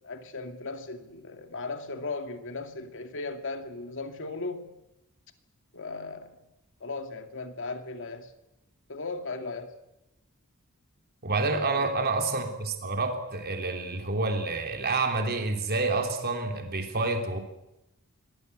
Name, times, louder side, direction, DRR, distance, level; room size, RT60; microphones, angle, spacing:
voice 1, 0.0-4.7 5.7-6.5 6.8-8.3 8.9-9.8 11.4-12.0, left 3 dB, 60° left, 2.3 m, -37 dB
voice 2, 11.2-17.4, right 3 dB, 45° right, 3.3 m, -28 dB
24.5 x 18.0 x 8.1 m
head